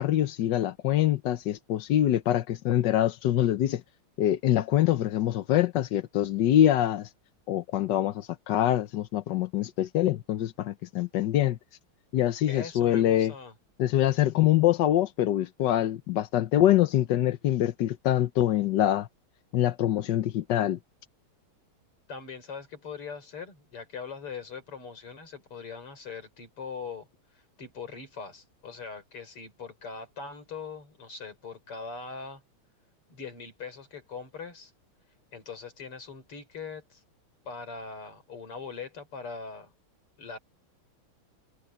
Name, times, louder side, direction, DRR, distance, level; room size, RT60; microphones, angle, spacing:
voice 1, 0.0-3.8 4.2-7.1 7.5-11.6 12.1-13.3 13.8-19.1 19.5-20.8, left 12 dB, 65° left, 1.2 m, -24 dB
voice 2, 12.5-13.5 22.1-27.1 27.6-32.4 33.1-34.7 35.3-37.0 37.5-39.7 40.2-40.4, left 5 dB, 85° left, 5.6 m, -41 dB
omnidirectional pair, 2.4 m